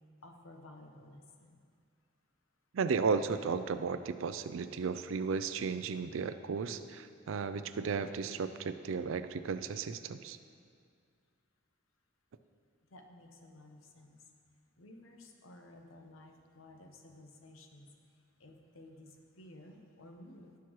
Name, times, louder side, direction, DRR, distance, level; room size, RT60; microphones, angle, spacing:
voice 1, 0.2-1.6 12.9-14.2 14.8-17.9 18.4-20.6, left 1 dB, 85° left, 3 dB, 1.0 m, -54 dB
voice 2, 2.7-10.4, right 5 dB, 75° right, 11 dB, 0.4 m, -34 dB
16.0 x 6.0 x 3.1 m, 2.2 s
head